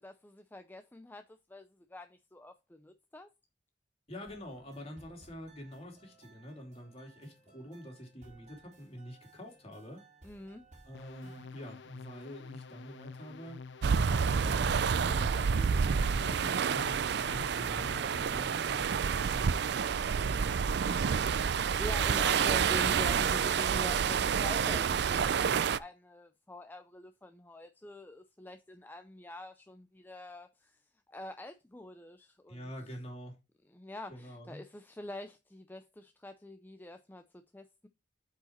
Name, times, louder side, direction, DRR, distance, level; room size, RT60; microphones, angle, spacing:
voice 1, 0.0-3.3 10.2-10.6 21.5-30.8 31.1-32.6 33.7-37.9, left 1 dB, 10° left, 0.4 m, -46 dB
voice 2, 4.1-10.0 10.8-18.9 19.3-19.6 20.1-21.1 32.5-33.4 34.1-34.6, equal, 35° left, 2.7 m, -47 dB
sound 1, 4.2-11.5, right 3 dB, 40° right, 3.6 m, -60 dB
sound 2, 10.9-18.5, left 4 dB, 70° left, 0.5 m, -48 dB
sound 3, 13.8-25.8, right 6 dB, 65° right, 0.4 m, -29 dB
7.8 x 4.9 x 4.3 m
head